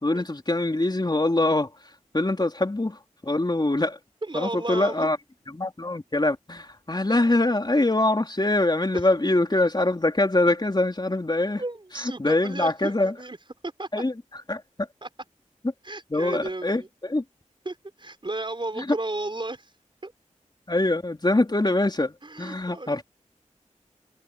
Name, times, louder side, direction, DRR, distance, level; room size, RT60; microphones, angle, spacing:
voice 1, 0.0-4.0 4.3-5.2 5.5-11.6 12.0-13.1 13.9-14.9 16.1-17.2 18.8-19.0 20.7-23.0, left 2 dB, 35° left, 3.6 m, -24 dB
voice 2, 4.2-5.1 7.1-7.2 11.6-13.4 13.6-13.9 15.0-15.1 15.8-16.9 17.6-19.7 20.0-20.1 22.2-23.0, right 2 dB, 40° right, 4.5 m, -33 dB
cardioid pair, 45°, 13 cm